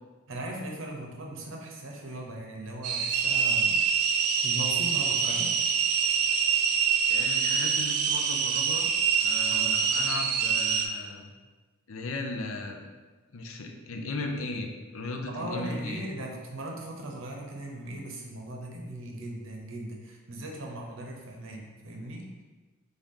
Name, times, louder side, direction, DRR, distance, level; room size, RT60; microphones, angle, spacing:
voice 1, 0.3-3.8 4.4-5.6 9.5-9.7 15.3-22.3, right 1 dB, 65° right, 0 dB, 0.8 m, -38 dB
sound 1, 2.8-10.9, right 6 dB, 90° right, 0.5 m, -25 dB
voice 2, 7.1-8.9 9.2-11.3 11.9-12.9 13.3-16.0, left 2 dB, 70° left, 3 dB, 0.6 m, -36 dB
4.0 x 3.5 x 3.7 m, 1.3 s
head